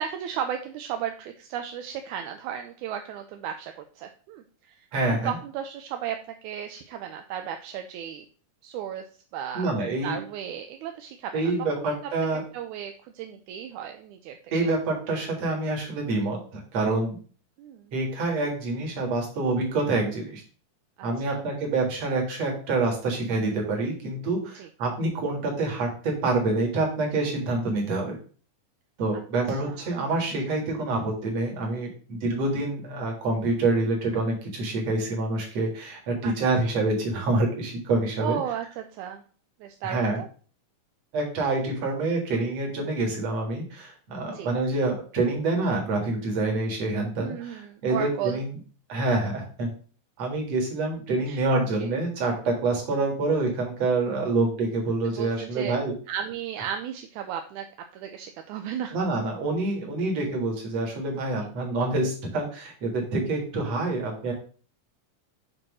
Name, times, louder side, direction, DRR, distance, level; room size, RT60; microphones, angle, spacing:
voice 1, 0.0-8.3 8.6-9.0 9.3-9.7 10.0-11.4 11.8-11.9 12.5-14.7 17.6-17.9 21.0-21.4 24.5-24.7 29.1-29.2 29.5-29.9 36.2-36.3 38.2-39.2 39.6-40.3 44.3-44.5 47.2-48.4 51.3-51.4 51.8-51.9 55.0-55.7 56.1-57.7 57.9-59.0 61.4-61.5, right 9 dB, 80° right, 6 dB, 1.9 m, -35 dB
voice 2, 4.9-5.4 9.5-10.2 11.3-12.4 14.5-17.2 17.9-20.4 21.0-28.2 29.0-38.4 39.8-40.2 41.1-48.5 48.9-49.7 50.2-55.9 58.9-64.3, right 2 dB, 55° right, 1 dB, 2.8 m, -27 dB
7.5 x 3.0 x 6.1 m, 0.41 s
omnidirectional pair, 3.7 m